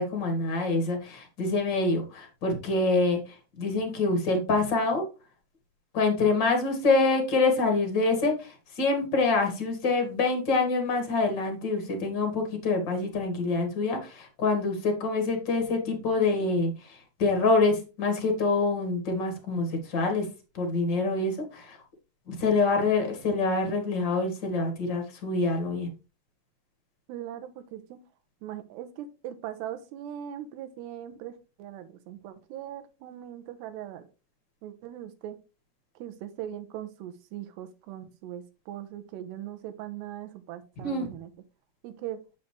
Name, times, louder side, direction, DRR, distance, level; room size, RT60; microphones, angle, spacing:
voice 1, 0.0-5.0 5.9-20.3 20.5-21.8 22.3-25.9 40.8-41.1, left 3 dB, 40° left, 4 dB, 1.7 m, -26 dB
voice 2, 27.1-28.0 28.4-34.1 34.6-35.4 36.0-41.3 41.8-42.2, right 11 dB, 85° right, 10 dB, 2.9 m, -40 dB
8.4 x 6.6 x 3.2 m, 0.30 s
omnidirectional pair, 4.9 m